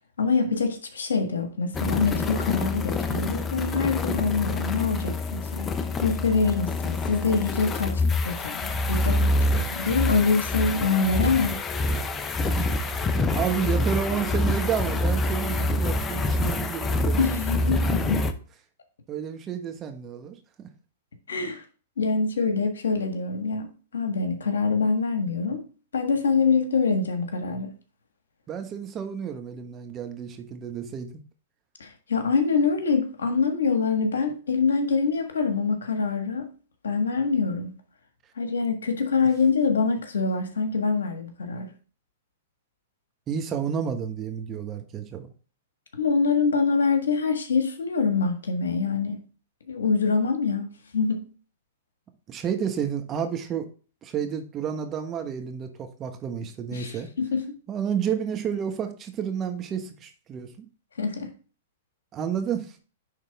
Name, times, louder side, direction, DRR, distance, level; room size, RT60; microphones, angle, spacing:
voice 1, 0.2-5.7 6.0-11.6 17.2-18.2 21.3-21.6 22.0-25.6 25.9-27.7 31.8-36.5 36.8-37.7 38.4-41.7 45.9-49.2 49.7-50.7 50.9-51.2 56.7-57.6 61.0-61.3, left 4 dB, 80° left, 1.5 m, -25 dB
sound 1, 1.7-18.3, left 2 dB, 20° left, 0.7 m, -26 dB
voice 2, 12.4-12.7 13.3-17.4 17.7-18.3 19.1-20.7 28.5-31.2 43.3-45.3 52.3-53.7 54.0-57.1 57.7-60.7 62.1-62.8, right 8 dB, 25° right, 1.2 m, -31 dB
9.9 x 3.6 x 3.5 m
hypercardioid pair, 115°, 0 cm